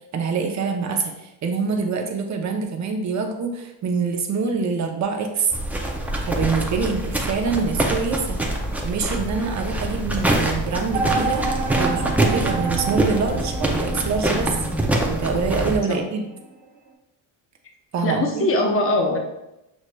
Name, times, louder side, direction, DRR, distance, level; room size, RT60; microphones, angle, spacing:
voice 1, 0.1-5.5 6.3-8.4 8.8-11.5 11.7-14.6 15.1-16.2 17.9-18.5, right 5 dB, 40° right, 3 dB, 0.6 m, -25 dB
sound 1, 5.5-15.8, right 1 dB, 5° right, 0.3 m, -25 dB
sound 2, 10.9-16.5, right 4 dB, 65° right, 1.1 m, -29 dB
voice 2, 18.0-19.2, left 1 dB, 30° left, 2 dB, 0.7 m, -21 dB
6.2 x 3.1 x 2.2 m, 0.92 s
cardioid pair, 135°, 46 cm